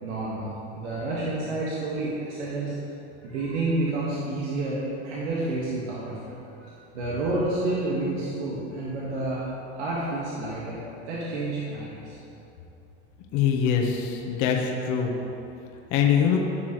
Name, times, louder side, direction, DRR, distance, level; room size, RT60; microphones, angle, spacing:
voice 1, 0.0-2.8 3.2-6.3 6.6-9.4 9.8-10.8 11.1-12.2, right 2 dB, 75° right, -6 dB, 1.8 m, -29 dB
voice 2, 13.3-15.1 15.9-16.4, left 7 dB, 55° left, 1 dB, 1.3 m, -23 dB
15.0 x 6.1 x 3.2 m, 2.9 s
supercardioid pair, 105°, 35 cm